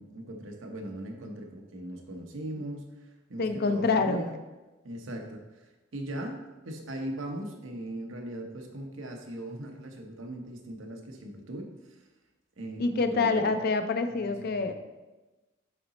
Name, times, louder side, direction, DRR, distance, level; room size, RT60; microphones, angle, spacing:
voice 1, 0.0-4.4 4.8-12.0 12.6-13.6 14.1-14.7, right 1 dB, 90° right, 3 dB, 0.9 m, -39 dB
voice 2, 3.4-4.3 12.8-14.7, left 4 dB, 55° left, 8 dB, 0.5 m, -26 dB
6.5 x 4.0 x 4.1 m, 1.1 s
head